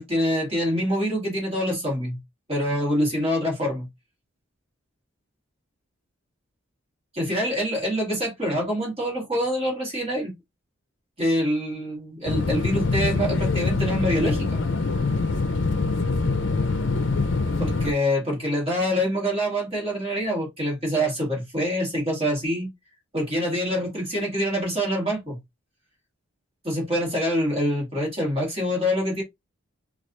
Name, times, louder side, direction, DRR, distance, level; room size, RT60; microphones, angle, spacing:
voice 1, 0.0-2.2 2.5-3.9 7.1-10.3 11.2-14.6 17.6-22.7 23.1-25.4 26.6-29.2, equal, 25° right, 1.6 m, -25 dB
sound 1, 12.3-17.9, left 3 dB, 55° left, 0.5 m, -24 dB
4.6 x 2.4 x 2.7 m
head